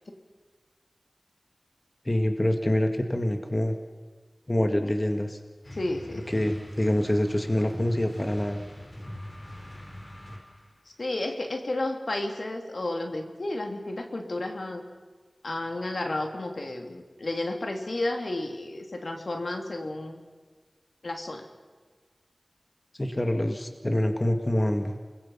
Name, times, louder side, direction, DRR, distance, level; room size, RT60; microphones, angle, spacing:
voice 1, 2.1-3.7 4.5-5.4 6.3-8.6 23.0-24.9, left 1 dB, 30° left, 6 dB, 2.0 m, -26 dB
sound 1, 5.6-10.8, left 1 dB, 55° left, 5.2 m, -42 dB
voice 2, 5.7-6.2 11.0-14.8 15.4-20.2 21.0-21.4, left 2 dB, 75° left, 3 dB, 2.9 m, -32 dB
28.5 x 22.0 x 5.7 m, 1.4 s
wide cardioid pair, 65°, 0 cm